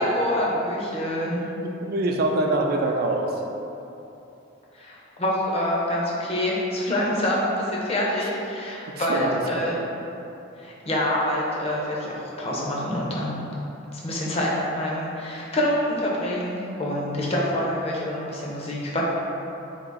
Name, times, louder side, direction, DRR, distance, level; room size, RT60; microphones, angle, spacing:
voice 1, 0.0-1.4 4.7-9.8 10.6-13.4 13.9-19.0, left 1 dB, 30° left, -5 dB, 0.6 m, -26 dB
voice 2, 1.2-3.4 8.8-9.8 17.3-17.4, right 2 dB, 50° right, 2 dB, 0.4 m, -26 dB
3.5 x 2.8 x 4.0 m, 2.9 s
head